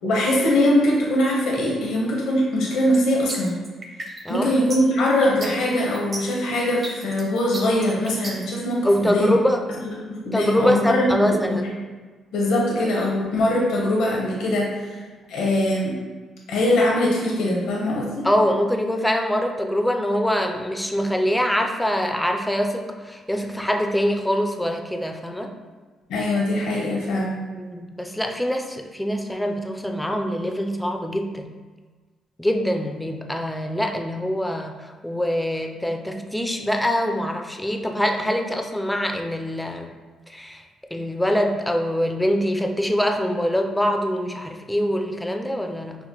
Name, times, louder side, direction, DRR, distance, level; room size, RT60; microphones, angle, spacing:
voice 1, 0.0-3.5 4.3-9.3 9.8-11.6 12.3-15.0 15.3-15.9 16.5-18.3 26.1-27.4, left 1 dB, 85° left, -2 dB, 0.7 m, -22 dB
sound 1, 2.9-8.5, right 2 dB, 35° right, 0.7 m, -34 dB
voice 2, 8.8-9.6 10.3-11.7 18.2-25.5 27.5-31.5 32.4-39.9 40.3-40.6 40.9-46.0, equal, 5° left, 4 dB, 0.4 m, -24 dB
5.9 x 2.1 x 2.9 m, 1.4 s
cardioid pair, 105°, 0 cm